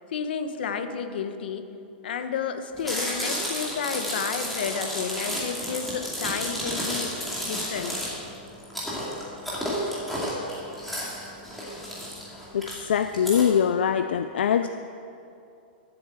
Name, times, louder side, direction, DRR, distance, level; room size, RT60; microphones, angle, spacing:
voice 1, 0.1-1.7 2.0-7.1 7.4-7.9, left 6 dB, 65° left, 8 dB, 1.1 m, -31 dB
Chewing mastication, 2.8-13.4, equal, ahead, 2.3 m, -31 dB
voice 2, 12.5-14.7, left 8 dB, 85° left, 9 dB, 0.5 m, -23 dB
12.5 x 8.1 x 7.6 m, 2.6 s
supercardioid pair, 175°, 6 cm